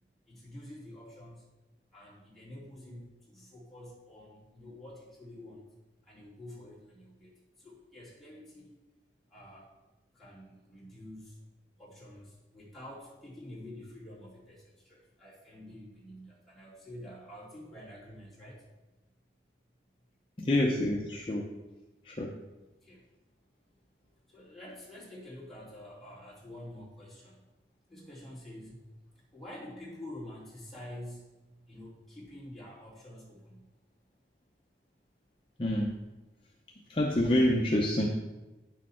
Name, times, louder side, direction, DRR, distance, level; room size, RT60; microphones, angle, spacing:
voice 1, 0.3-1.5 1.9-5.7 6.0-8.7 9.3-9.7 10.1-11.4 11.8-18.6 22.8-23.0 24.3-27.4 27.9-28.8 29.3-31.3 31.7-33.7, left 1 dB, ahead, -8 dB, 2.8 m, -48 dB
voice 2, 20.4-21.5 22.0-22.4 35.6-35.9 36.9-38.1, left 1 dB, 30° left, 0 dB, 0.6 m, -27 dB
9.2 x 6.5 x 4.3 m, 1.1 s
head